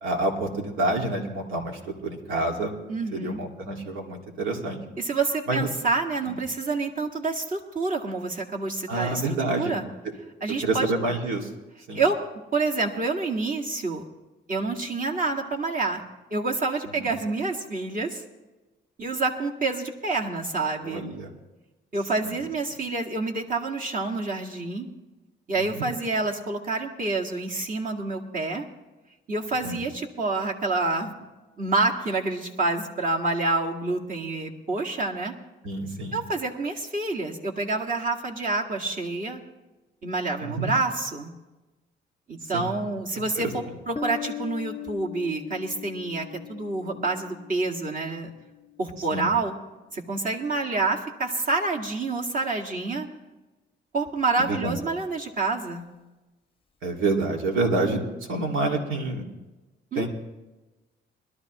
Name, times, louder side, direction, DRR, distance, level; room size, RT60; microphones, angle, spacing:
voice 1, 0.0-2.7 3.1-4.8 5.5-5.6 8.9-9.7 10.6-11.5 11.9-12.0 20.8-21.3 25.7-25.8 29.6-29.8 35.6-36.2 40.4-40.7 42.5-42.7 43.4-43.5 49.1-49.3 54.5-54.8 56.8-58.0 58.3-59.2 60.0-60.1, right 2 dB, 85° right, 1 dB, 2.0 m, -27 dB
voice 2, 2.9-3.4 5.0-9.8 10.4-10.9 11.9-12.2 12.5-14.0 14.5-16.0 16.3-18.2 19.0-21.0 21.9-24.9 25.5-28.6 29.3-31.1 31.6-35.3 36.1-39.4 40.0-41.3 42.3-48.3 48.8-49.6 49.9-53.1 53.9-55.9 59.9-60.1, right 3 dB, 45° right, 0 dB, 1.9 m, -28 dB
Piano, 44.0-49.3, left 10 dB, 25° left, 0.6 m, -40 dB
21.5 x 12.5 x 3.0 m, 1.1 s
cardioid pair, 90°, 20 cm